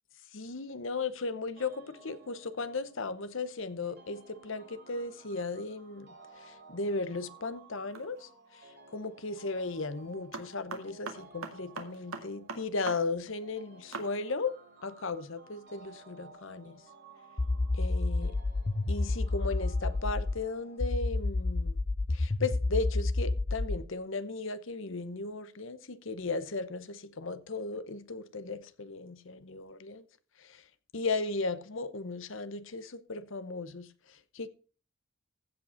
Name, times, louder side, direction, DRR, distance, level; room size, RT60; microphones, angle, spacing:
voice 1, 0.3-8.3 8.9-14.6 14.8-16.8 17.8-18.3 18.9-21.8 22.1-30.0 30.4-30.6 30.9-34.5, left 3 dB, 60° left, 0.9 m, -36 dB
sound 1, 1.6-20.8, right 3 dB, 45° right, 3.8 m, -56 dB
sound 2, 7.9-8.3 10.3-13.0 13.3-13.4 13.9-14.1, right 4 dB, 70° right, 1.9 m, -40 dB
sound 3, 17.4-20.4 20.8-23.8, left 2 dB, 25° left, 0.4 m, -29 dB
15.5 x 5.4 x 5.6 m
head